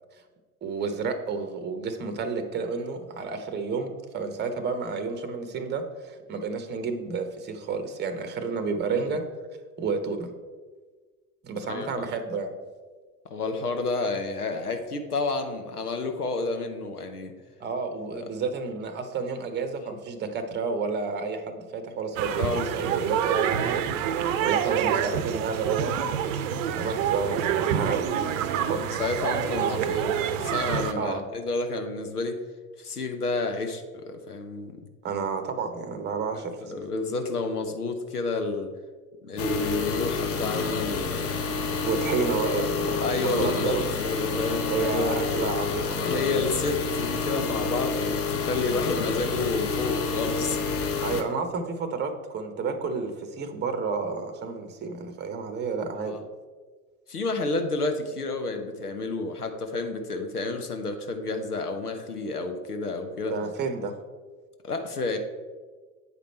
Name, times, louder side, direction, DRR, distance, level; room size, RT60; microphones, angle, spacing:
voice 1, 0.6-9.2 9.8-10.3 11.4-12.6 17.6-23.8 24.4-26.1 26.8-29.0 31.0-31.2 35.0-36.8 39.3-39.5 41.8-43.9 44.7-46.2 51.0-56.2 63.3-63.9, right 4 dB, 25° right, 8 dB, 0.9 m, -31 dB
voice 2, 11.7-12.1 13.2-17.3 19.8-20.0 22.4-22.7 28.8-32.4 32.8-34.8 36.7-38.7 39.2-41.5 43.0-45.2 46.0-50.6 51.1-51.2 56.0-56.2 57.1-63.3 64.6-65.2, left 3 dB, 90° left, 6 dB, 0.8 m, -30 dB
sound 1, 22.2-30.9, right 9 dB, 60° right, 0.7 m, -27 dB
sound 2, 39.4-51.2, left 4 dB, 30° left, 0.9 m, -29 dB
8.4 x 5.0 x 4.3 m, 1.4 s
figure-of-eight pair, 80°, 45 cm